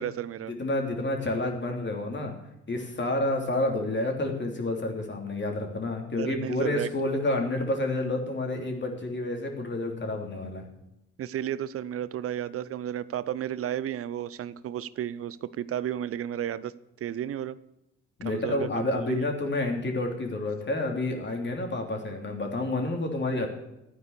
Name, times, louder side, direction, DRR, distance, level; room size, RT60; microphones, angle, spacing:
voice 1, 0.0-0.5 6.2-6.9 11.2-16.7 17.0-17.6 18.2-19.2, right 10 dB, 40° right, 18 dB, 0.7 m, -33 dB
voice 2, 0.6-2.3 2.7-10.6 18.2-23.5, left 2 dB, 30° left, 2 dB, 3.3 m, -29 dB
14.0 x 9.4 x 6.9 m, 0.88 s
figure-of-eight pair, 45°, 35 cm